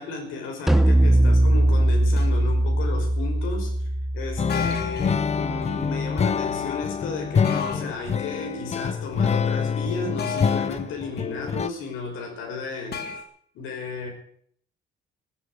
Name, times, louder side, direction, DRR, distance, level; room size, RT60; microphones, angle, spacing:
voice 1, 0.0-3.7 4.1-13.2 13.5-14.1, left 4 dB, 85° left, 2 dB, 5.6 m, -34 dB
sound 1, 0.7-6.1, right 1 dB, ahead, 0.8 m, -21 dB
sound 2, 2.2-2.4 4.5-5.3 7.4-8.0 10.2-10.8 12.9-13.2, left 5 dB, 55° left, 2.2 m, -33 dB
sound 3, 4.4-11.7, left 6 dB, 35° left, 0.6 m, -26 dB
15.0 x 9.2 x 9.6 m, 0.64 s
cardioid pair, 90°, 20 cm